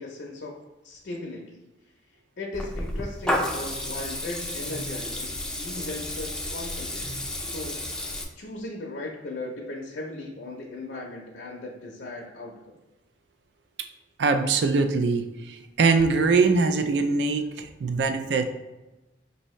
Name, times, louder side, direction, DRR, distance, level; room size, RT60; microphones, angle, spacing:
voice 1, 0.0-1.6 2.4-12.8, left 2 dB, 65° left, -1 dB, 0.6 m, -38 dB
Water tap faucet / Liquid, 2.5-8.2, left 1 dB, 5° left, 0.4 m, -31 dB
voice 2, 14.2-15.2 15.8-18.5, right 4 dB, 65° right, 7 dB, 0.4 m, -22 dB
5.4 x 2.7 x 3.1 m, 1.1 s
head